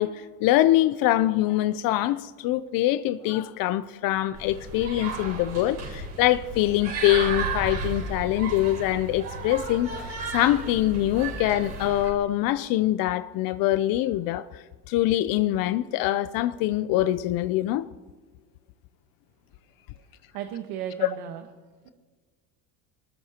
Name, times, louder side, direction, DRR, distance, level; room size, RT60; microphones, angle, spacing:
voice 1, 0.0-17.8 21.0-21.1, left 14 dB, 65° left, 0.6 m, -24 dB
sound 1, 4.3-12.1, right 4 dB, 45° right, 4.9 m, -34 dB
voice 2, 20.3-21.5 21.8-21.9, right 10 dB, 80° right, 1.3 m, -35 dB
21.0 x 19.5 x 2.9 m
supercardioid pair, 110°, 36 cm